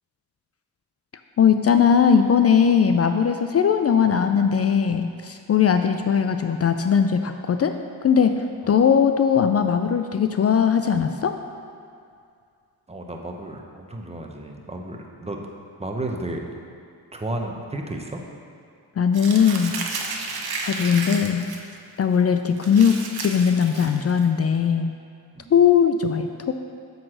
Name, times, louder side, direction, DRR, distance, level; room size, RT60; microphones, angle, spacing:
voice 1, 1.4-7.7 8.0-11.4 19.0-19.7 20.6-21.5 22.0-24.9 25.5-26.5, left 7 dB, 40° left, 7 dB, 0.4 m, -19 dB
voice 2, 12.9-15.5 15.8-16.5 17.1-18.2 25.4-25.5, right 1 dB, 15° right, 2 dB, 0.9 m, -33 dB
Crumpling crinkling, 19.1-21.6 22.0-22.1 22.6-24.2, right 4 dB, 65° right, 1.0 m, -32 dB
7.5 x 4.0 x 6.2 m, 2.3 s
cardioid pair, 65°, 40 cm